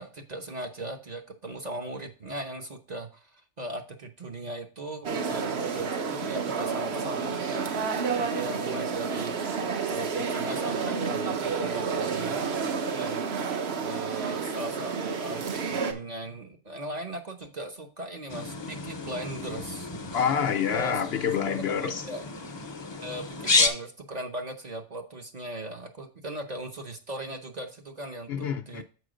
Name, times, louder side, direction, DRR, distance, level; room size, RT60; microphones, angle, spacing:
voice 1, 0.0-9.3 9.9-19.9 20.7-21.0 21.5-22.3 23.0-28.8, right 1 dB, 40° right, 0.8 m, -38 dB
sound 1, 5.0-15.9, right 5 dB, 60° right, 1.1 m, -30 dB
sound 2, 18.3-23.7, left 3 dB, 30° left, 0.6 m, -31 dB
voice 2, 20.1-22.0 28.3-28.8, left 7 dB, 65° left, 0.8 m, -27 dB
7.1 x 4.9 x 5.0 m
omnidirectional pair, 1.2 m